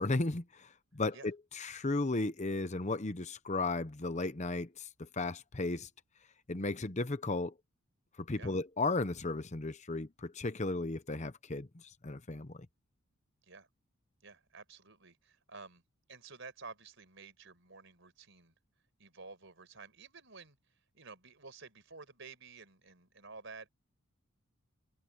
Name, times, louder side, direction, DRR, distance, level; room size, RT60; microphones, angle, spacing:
voice 1, 0.0-5.9 6.5-7.5 8.2-12.6, left 2 dB, 35° left, 0.8 m, -35 dB
voice 2, 14.2-15.8 16.1-18.6 19.0-20.6 20.9-23.7, right 4 dB, 60° right, 5.2 m, -52 dB
head